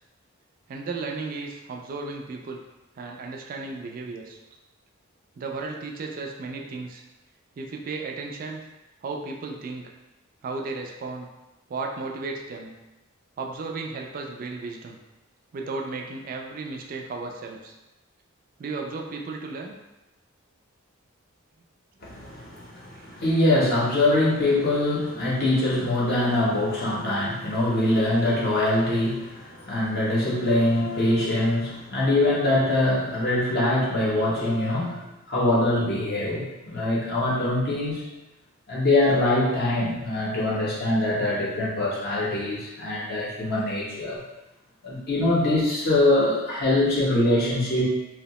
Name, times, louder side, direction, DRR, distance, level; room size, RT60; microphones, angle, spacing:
voice 1, 0.7-2.6 3.0-4.4 5.4-7.0 7.6-8.6 9.0-9.9 10.4-11.3 11.7-12.7 13.4-15.0 15.5-17.7 18.6-19.8 22.9-23.2, right 3 dB, 40° right, 1 dB, 0.3 m, -34 dB
voice 2, 22.0-38.0 38.7-44.2 44.8-47.8, left 1 dB, 45° left, -6 dB, 0.6 m, -23 dB
2.7 x 2.0 x 2.9 m, 0.99 s
head